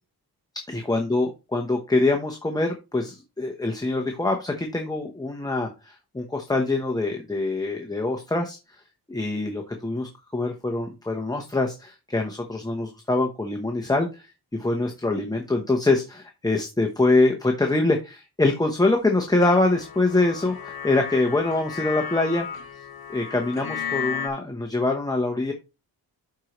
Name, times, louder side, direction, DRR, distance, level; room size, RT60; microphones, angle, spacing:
voice 1, 0.7-8.8 9.1-14.3 14.5-22.5 23.1-25.5, left 2 dB, 10° left, 2 dB, 0.9 m, -24 dB
sound 1, 19.4-24.3, left 7 dB, 70° left, 1.1 m, -34 dB
11.5 x 4.6 x 3.1 m, 0.28 s
wide cardioid pair, 130°, 38 cm